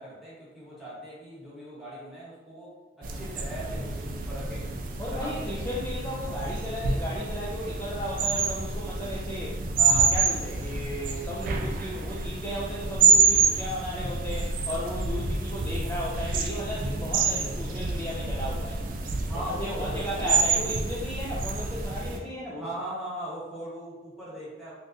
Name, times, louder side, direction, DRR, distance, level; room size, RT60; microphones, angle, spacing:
voice 1, 0.0-4.7 5.1-5.5 19.3-20.4 22.6-24.7, equal, ahead, -9 dB, 1.1 m, -39 dB
sound 1, 3.0-22.2, right 4 dB, 50° right, 0.4 m, -27 dB
voice 2, 5.0-18.8 19.3-22.6, equal, 15° left, -7 dB, 0.4 m, -35 dB
3.5 x 2.6 x 2.6 m, 1.2 s
head